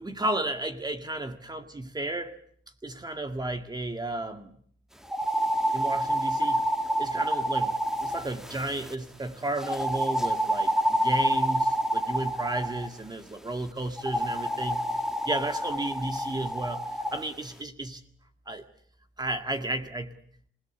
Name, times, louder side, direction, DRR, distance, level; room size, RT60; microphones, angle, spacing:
voice 1, 0.0-2.4 2.8-4.5 5.7-6.6 7.0-7.7 8.0-14.8 15.3-18.0 18.5-18.7 19.2-20.1, right 2 dB, 20° right, 6 dB, 1.9 m, -33 dB
sound 1, 5.0-8.9 9.6-12.9 14.0-17.2, equal, ahead, 1.6 m, -28 dB
27.0 x 17.5 x 8.2 m, 0.62 s
cardioid pair, 90°, 20 cm